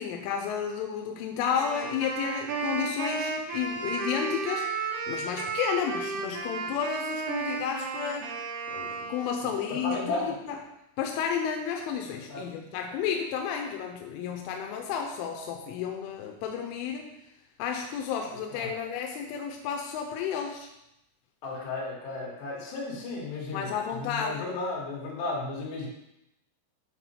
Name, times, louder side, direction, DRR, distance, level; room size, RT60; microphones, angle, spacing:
voice 1, 0.0-8.3 8.7-10.6 11.0-17.1 17.6-20.7 23.5-24.4, left 7 dB, 90° left, 3 dB, 3.2 m, -32 dB
Wind instrument woodwind instrument, 1.5-9.7, right 4 dB, 75° right, 2.5 m, -33 dB
voice 2, 9.4-10.4 12.1-12.5 18.3-18.7 21.4-25.9, left 3 dB, 65° left, -4 dB, 3.9 m, -35 dB
9.8 x 4.1 x 4.4 m, 0.85 s
omnidirectional pair, 5.6 m